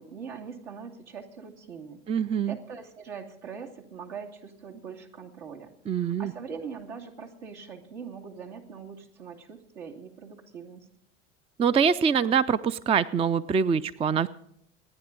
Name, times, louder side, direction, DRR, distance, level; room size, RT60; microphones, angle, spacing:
voice 1, 0.0-2.0 2.5-10.9, right 6 dB, 70° right, 1 dB, 2.7 m, -42 dB
voice 2, 2.1-2.6 5.9-6.3 11.6-14.3, right 7 dB, 15° right, 16 dB, 0.5 m, -24 dB
26.5 x 9.9 x 3.9 m, 0.76 s
figure-of-eight pair, 70°, 35 cm